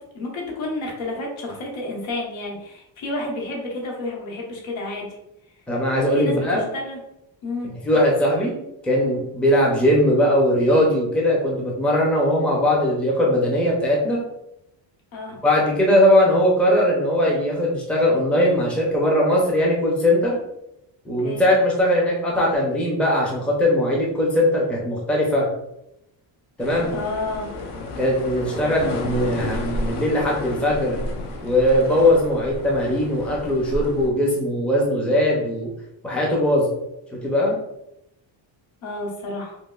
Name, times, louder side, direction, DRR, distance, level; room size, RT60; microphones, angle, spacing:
voice 1, 0.1-5.1 6.1-7.0 7.4-7.7 15.1-15.4 21.2-21.4 26.8-27.5 38.8-39.6, left 2 dB, 85° left, -1 dB, 1.2 m, -30 dB
voice 2, 5.7-6.7 7.6-8.5 8.8-14.2 15.4-20.4 21.1-25.5 26.6-26.9 28.0-31.0 31.4-35.7 36.0-36.7 37.1-37.6, left 1 dB, 5° left, -3 dB, 0.4 m, -20 dB
sound 1, 26.6-34.1, left 1 dB, 60° left, 0.7 m, -32 dB
5.1 x 2.1 x 2.3 m, 0.84 s
cardioid pair, 175°, 46 cm